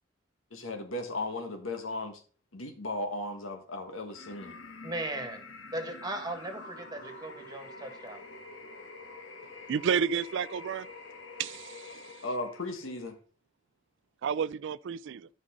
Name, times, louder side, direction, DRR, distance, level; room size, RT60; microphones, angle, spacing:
voice 1, 0.5-2.2 2.5-4.6 12.2-13.2, left 2 dB, 90° left, 1.7 m, -36 dB
sound 1, 4.1-13.1, left 3 dB, 70° left, 1.3 m, -47 dB
voice 2, 4.8-5.4 5.7-8.2, right 1 dB, 20° right, 1.8 m, -37 dB
voice 3, 9.7-10.9 11.4-11.9 14.2-15.3, right 7 dB, 65° right, 0.3 m, -30 dB
13.0 x 5.4 x 3.8 m
head